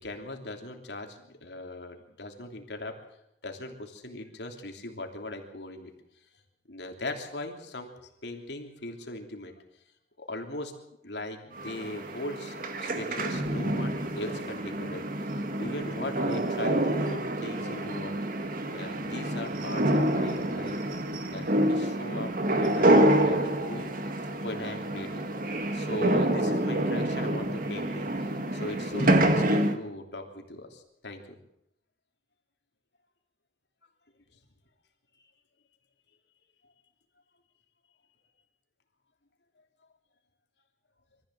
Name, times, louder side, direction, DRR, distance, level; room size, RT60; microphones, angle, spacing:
voice 1, 0.0-2.9 3.4-5.9 6.7-9.5 10.2-10.8 11.0-15.0 15.3-18.2 18.7-20.8 21.3-24.1 24.4-25.3 25.7-31.4, left 1 dB, 80° left, 4 dB, 3.2 m, -39 dB
sound 1, 11.6-29.8, right 1 dB, 50° right, 1.8 m, -27 dB
24.0 x 14.5 x 7.7 m, 0.79 s
head